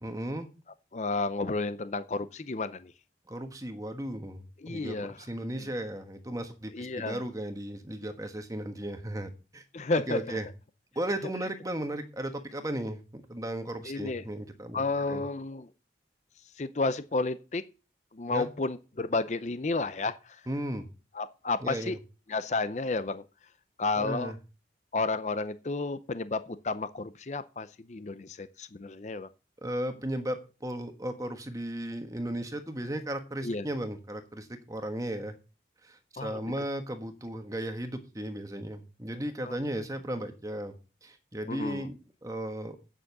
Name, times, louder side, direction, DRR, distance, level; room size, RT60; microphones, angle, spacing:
voice 1, 0.0-0.5 3.3-9.7 10.1-10.5 10.9-15.3 18.3-18.5 20.5-20.9 21.6-22.0 24.0-24.4 29.6-35.3 35.8-40.7 41.0-42.8, right 1 dB, 20° right, 1.2 m, -35 dB
voice 2, 0.9-2.9 4.6-5.2 6.7-7.2 9.7-10.4 13.8-14.2 14.7-15.7 16.6-17.6 18.1-20.4 21.1-22.0 22.3-23.2 23.8-24.3 24.9-29.3 33.4-33.7 36.2-36.4 39.4-39.6 41.5-41.9, left 3 dB, 40° left, 0.6 m, -31 dB
8.8 x 7.3 x 6.7 m
head